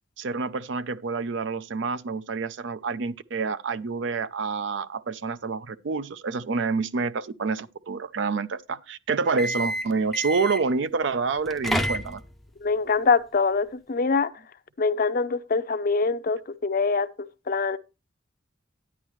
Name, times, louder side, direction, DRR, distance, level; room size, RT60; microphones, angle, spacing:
voice 1, 0.2-12.2, right 4 dB, 65° right, 0.5 m, -28 dB
sound 1, 9.3-10.8 11.4-12.5, equal, ahead, 0.5 m, -29 dB
voice 2, 12.6-14.3 14.8-17.8, left 4 dB, 45° left, 0.5 m, -24 dB
10.0 x 9.6 x 3.1 m
head